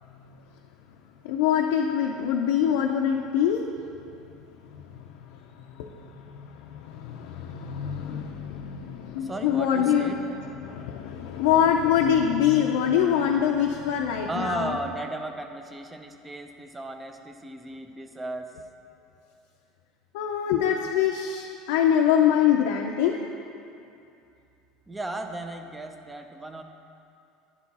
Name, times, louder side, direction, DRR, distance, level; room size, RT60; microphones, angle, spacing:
voice 1, 1.2-3.6 4.7-5.0 5.8-14.8 20.1-23.3, left 9 dB, 85° left, 1 dB, 0.4 m, -24 dB
voice 2, 9.2-10.2 14.3-18.5 24.9-26.6, right 2 dB, 10° right, 6 dB, 0.4 m, -35 dB
10.0 x 4.5 x 4.1 m, 2.6 s
cardioid pair, 155°, 0 cm